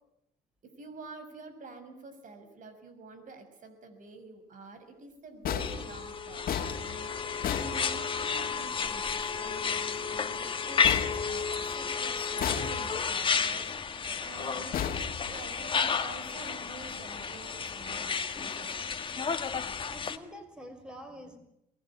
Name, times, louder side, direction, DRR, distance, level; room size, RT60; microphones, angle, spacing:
voice 1, 0.6-14.8 15.3-19.0, right 3 dB, 50° right, 9 dB, 6.2 m, -48 dB
sound 1, 5.4-8.5 10.8-11.9 12.4-13.2 14.7-15.8, left 8 dB, 60° left, 2.5 m, -35 dB
sound 2, 5.6-20.2, left 6 dB, 30° left, 1.8 m, -32 dB
voice 2, 14.0-14.6 19.9-21.4, equal, 5° right, 6 dB, 5.9 m, -48 dB
23.0 x 19.5 x 9.9 m, 0.80 s
cardioid pair, 110°, 17 cm